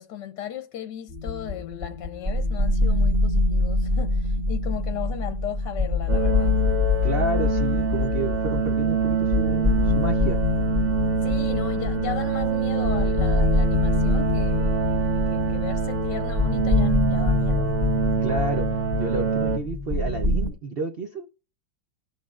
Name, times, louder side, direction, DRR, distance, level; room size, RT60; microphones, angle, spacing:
voice 1, 0.0-6.6 11.2-14.8 15.3-17.8, left 10 dB, 70° left, 1.2 m, -36 dB
sound 1, 1.1-20.5, left 3 dB, 30° right, 1.3 m, -25 dB
sound 2, 6.1-19.6, right 7 dB, 50° right, 0.9 m, -26 dB
voice 2, 7.0-10.4 18.2-21.3, right 3 dB, 80° right, 0.5 m, -30 dB
19.5 x 6.5 x 2.5 m
omnidirectional pair, 2.1 m